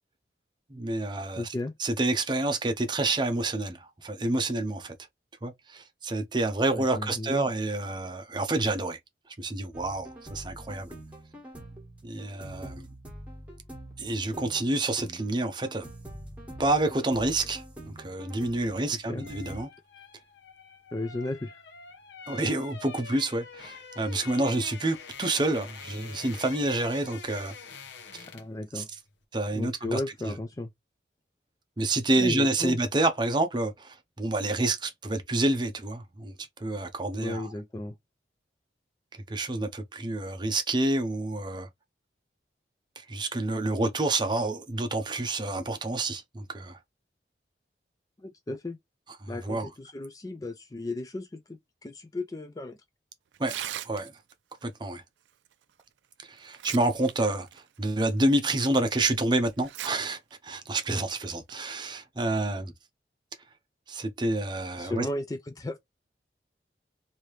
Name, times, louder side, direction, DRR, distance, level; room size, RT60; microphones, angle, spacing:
voice 1, 0.7-1.5 1.8-4.9 5.4-9.0 9.4-10.9 12.0-12.9 14.0-15.9 16.6-19.7 22.3-27.5 28.1-28.2 28.7-28.8 29.3-30.0 30.2-30.3 31.8-36.3 36.6-37.5 39.3-41.7 43.0-46.8 49.2-49.7 53.4-53.5 53.8-54.1 54.6-55.0 56.2-62.7 63.9-65.1, right 2 dB, 25° right, 0.7 m, -28 dB
voice 2, 1.3-1.7 6.7-7.5 19.1-19.2 20.9-21.6 28.3-28.9 29.5-30.7 32.2-32.8 37.2-37.9 48.2-48.8 49.3-52.8 64.8-65.8, left 2 dB, 20° left, 0.3 m, -34 dB
sound 1, 9.7-19.6, right 1 dB, 10° right, 1.5 m, -45 dB
sound 2, 18.6-28.6 28.9-29.1, left 5 dB, 85° left, 0.8 m, -46 dB
Tearing, 53.3-54.3 55.8-55.9 56.4-57.1 57.5-57.6 58.3-58.4 59.6-59.9 60.3-60.4 61.2-61.5, right 11 dB, 90° right, 0.4 m, -37 dB
3.2 x 2.7 x 3.1 m
head